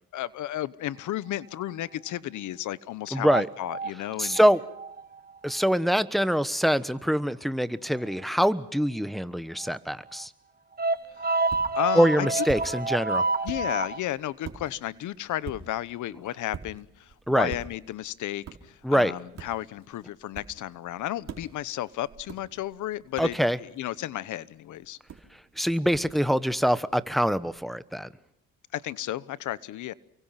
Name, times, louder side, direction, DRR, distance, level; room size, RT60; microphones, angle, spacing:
voice 1, 0.1-4.4 11.2-12.4 13.4-25.0 28.7-29.9, left 13 dB, 80° left, 19 dB, 1.1 m, -33 dB
voice 2, 3.1-3.5 4.2-4.6 5.4-10.3 11.9-13.2 17.3-17.5 18.8-19.1 23.2-23.6 25.6-28.1, equal, ahead, 14 dB, 1.2 m, -24 dB
sound 1, 3.1-5.2 8.1-8.2 9.6-9.8 10.2-10.3 10.8-14.0, right 3 dB, 30° right, 1.3 m, -28 dB
sound 2, 10.9-27.6, right 6 dB, 60° right, 4.2 m, -47 dB
29.0 x 24.0 x 5.9 m, 0.79 s
cardioid pair, 90°, 30 cm